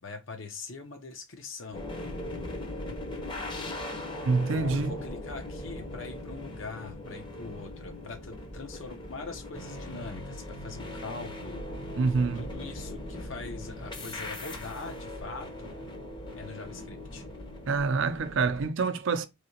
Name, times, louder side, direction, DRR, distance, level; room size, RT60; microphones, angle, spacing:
voice 1, 0.0-1.9 4.5-11.6 12.3-15.7 16.3-17.2, left 3 dB, 65° left, 0.8 m, -42 dB
sound 1, 1.7-18.7, left 1 dB, 25° left, 0.7 m, -39 dB
voice 2, 4.3-5.0 12.0-12.5 17.7-19.3, right 4 dB, 60° right, 0.4 m, -26 dB
3.2 x 2.8 x 2.8 m
head